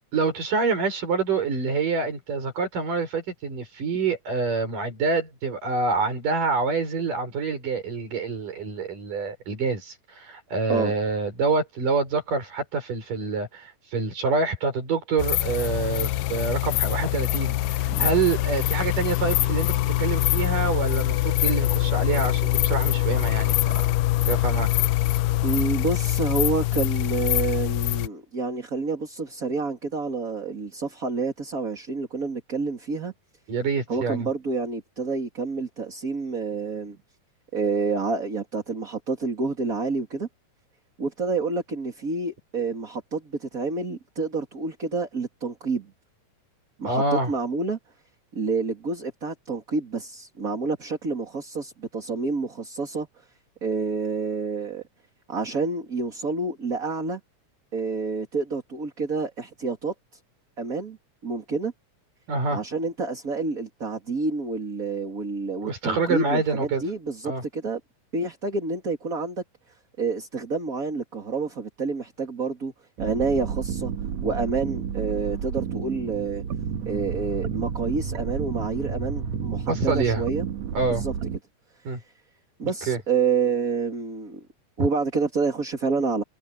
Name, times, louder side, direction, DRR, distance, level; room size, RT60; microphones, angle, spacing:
voice 1, 0.1-19.7 20.0-23.6 24.3-24.7 33.5-34.3 46.8-47.3 62.3-62.6 65.6-66.8 67.2-67.4 79.7-80.2 80.7-81.0 81.8-82.0 82.9-83.0 84.8-84.9, right 4 dB, 75° right, 8.0 m, -26 dB
sound 1, 15.2-28.1, left 15 dB, 85° left, 2.2 m, -24 dB
voice 2, 25.4-33.1 33.9-37.0 37.5-40.3 41.0-45.9 46.8-47.8 48.3-53.2 53.6-54.8 55.3-57.2 57.7-60.2 60.6-61.0 61.2-61.7 62.5-67.8 68.1-69.4 70.0-72.7 73.0-73.9 74.2-76.4 76.8-80.4 80.8-81.1 81.9-82.0 82.6-84.4 84.8-86.2, right 4 dB, 25° right, 3.0 m, -28 dB
sound 2, 73.0-81.4, right 7 dB, 60° right, 2.5 m, -31 dB
omnidirectional pair, 3.7 m